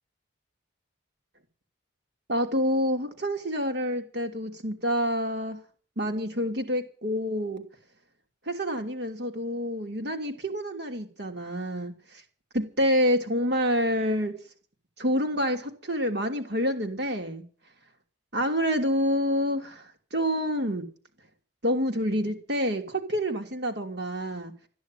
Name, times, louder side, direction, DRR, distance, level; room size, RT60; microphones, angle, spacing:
voice 1, 2.3-5.6 6.0-7.6 8.5-11.9 12.5-14.3 15.0-17.4 18.3-19.8 20.1-20.8 21.6-24.5, equal, 60° right, 3.0 m, -27 dB
14.0 x 10.0 x 9.2 m
head